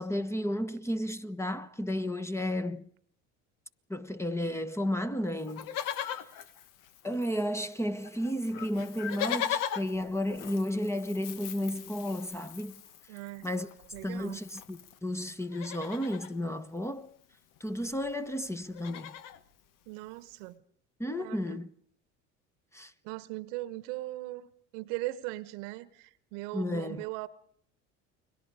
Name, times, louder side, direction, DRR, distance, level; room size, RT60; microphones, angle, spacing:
voice 1, 0.0-2.9 3.9-6.1 7.0-12.8 13.4-13.7 14.0-17.1 17.6-19.1 21.0-21.7 22.7-22.9 26.5-27.0, left 1 dB, 5° left, 1.2 m, -33 dB
Livestock farm animals working animals, 5.4-7.5 7.7-7.8 8.0-15.0 15.4-16.3 17.6-17.7 17.8-18.1 18.5-19.4 20.0-20.1, left 10 dB, 60° left, 1.4 m, -39 dB
voice 2, 13.1-14.4 19.9-20.6 21.2-21.6 23.0-24.5 24.7-27.3, right 18 dB, 75° right, 1.2 m, -39 dB
29.5 x 22.0 x 4.9 m
hypercardioid pair, 75°, 37 cm